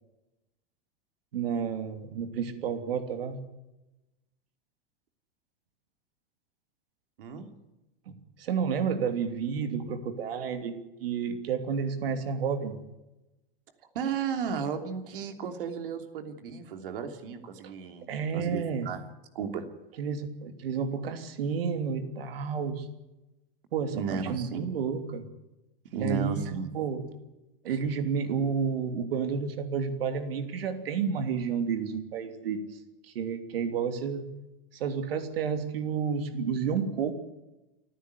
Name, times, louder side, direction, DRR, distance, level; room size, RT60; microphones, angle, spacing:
voice 1, 1.3-3.4 8.4-12.8 17.6-17.7 18.1-18.9 20.0-22.9 23.7-25.3 25.9-27.0 27.6-32.8 33.0-34.2 34.7-37.1, right 6 dB, 80° right, 7 dB, 3.1 m, -31 dB
voice 2, 13.9-18.1 18.3-19.0 19.3-19.6 23.9-24.6 25.9-26.7, right 6 dB, 65° right, 7 dB, 3.1 m, -34 dB
29.0 x 10.0 x 9.7 m, 1.0 s
supercardioid pair, 175°, 29 cm